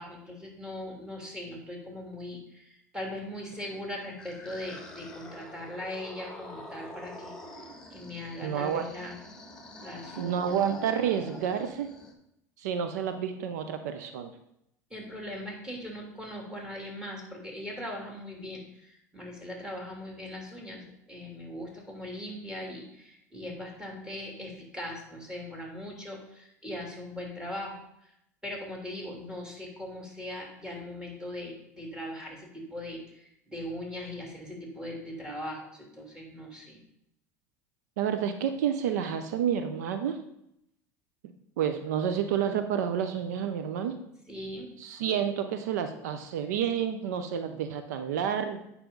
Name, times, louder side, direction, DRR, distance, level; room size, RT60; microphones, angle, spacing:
voice 1, 0.0-9.2 9.8-10.3 14.9-28.1 28.4-36.8 44.3-44.7, left 1 dB, 10° right, -1 dB, 3.0 m, -40 dB
sound 1, 3.7-12.1, left 1 dB, 10° left, 1.6 m, -46 dB
voice 2, 8.4-8.9 10.2-11.9 12.6-14.3 38.0-40.2 41.6-43.9 44.8-48.6, right 8 dB, 75° right, 8 dB, 0.6 m, -29 dB
8.8 x 5.9 x 3.8 m, 0.79 s
hypercardioid pair, 85°, 9 cm